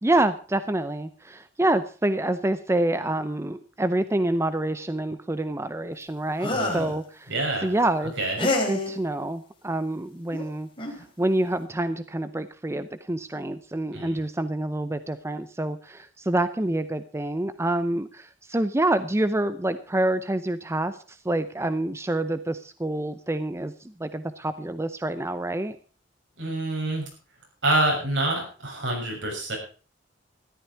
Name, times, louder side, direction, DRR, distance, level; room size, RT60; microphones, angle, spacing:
voice 1, 0.0-7.3 7.6-10.7 11.2-23.7 24.0-25.7, right 1 dB, 15° right, 11 dB, 0.6 m, -27 dB
sound 1, 6.4-6.9 8.4-8.9 10.3-10.4 10.8-11.0, left 2 dB, 30° left, 3.7 m, -26 dB
voice 2, 6.5-6.9 7.3-7.7 8.2-8.4 13.9-14.2 26.4-27.0 27.6-29.6, right 1 dB, 70° right, 1 dB, 6.8 m, -26 dB
14.0 x 12.0 x 4.6 m, 0.37 s
head